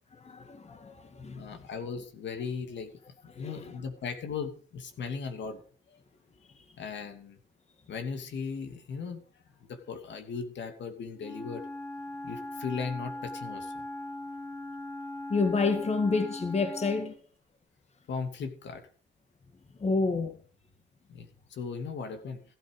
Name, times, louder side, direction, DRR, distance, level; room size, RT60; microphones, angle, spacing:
voice 1, 0.1-1.6 3.3-3.7 6.6-6.7 15.3-17.2 19.8-20.4, left 4 dB, 35° left, 1.9 m, -29 dB
voice 2, 1.3-2.9 3.4-5.6 5.9-6.0 6.8-7.4 7.9-9.2 9.7-11.6 12.2-13.7 18.1-18.8 21.1-22.4, left 5 dB, 65° left, 2.7 m, -37 dB
Wind instrument woodwind instrument, 11.2-17.2, left 1 dB, 15° left, 1.8 m, -40 dB
15.0 x 8.9 x 5.1 m
cardioid pair, 90°, 20 cm